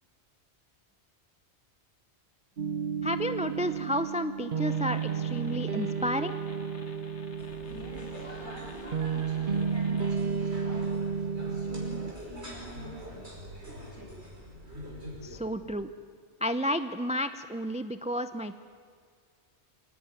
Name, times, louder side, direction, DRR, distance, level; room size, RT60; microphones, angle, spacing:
sound 1, 2.6-12.1, right 6 dB, 50° right, 1.0 m, -32 dB
voice 1, 3.0-6.3 15.2-15.9 16.4-18.6, equal, 5° right, 11 dB, 0.6 m, -31 dB
sound 2, 4.6-10.2, left 5 dB, 85° left, 1.8 m, -52 dB
sound 3, 7.4-15.4, equal, 70° right, 5.6 m, -45 dB
voice 2, 7.6-10.9 11.4-13.3 13.9-14.1, equal, 55° left, -3 dB, 8.3 m, -46 dB
25.5 x 18.5 x 9.6 m, 2.1 s
omnidirectional pair, 1.1 m